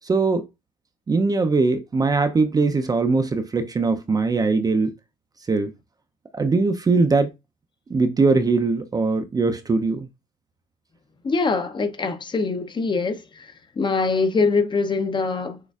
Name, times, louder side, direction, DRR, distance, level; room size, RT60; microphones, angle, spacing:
voice 1, 0.0-0.4 1.1-4.9 5.5-5.7 6.3-7.3 7.9-10.1, right 3 dB, 20° right, 0.5 m, -21 dB
voice 2, 11.2-15.6, left 4 dB, 30° left, 0.6 m, -23 dB
6.3 x 2.4 x 2.3 m
cardioid pair, 110°, 17 cm